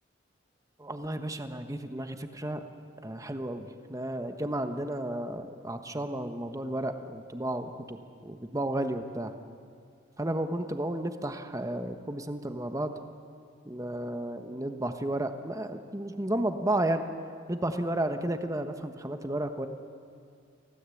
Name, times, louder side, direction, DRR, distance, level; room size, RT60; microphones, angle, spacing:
voice 1, 0.8-2.6 3.0-9.3 10.2-13.0 13.6-17.0 17.5-19.7, right 1 dB, 15° right, 7 dB, 1.2 m, -32 dB
25.0 x 17.0 x 8.5 m, 2.3 s
head